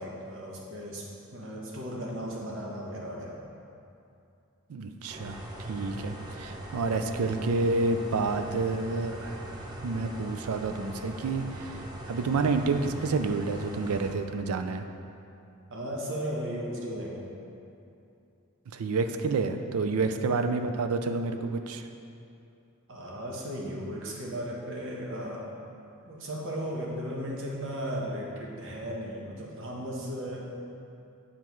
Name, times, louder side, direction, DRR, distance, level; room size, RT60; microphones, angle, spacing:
voice 1, 0.0-3.4 15.7-17.2 19.9-20.1 22.9-25.5 26.1-30.6, equal, 60° right, -2 dB, 1.0 m, -36 dB
voice 2, 4.7-5.4 5.7-14.8 18.7-21.9, right 3 dB, 75° right, 7 dB, 0.4 m, -29 dB
sound 1, 5.1-14.1, right 1 dB, 20° right, 0.6 m, -41 dB
9.0 x 4.3 x 3.1 m, 2.7 s
head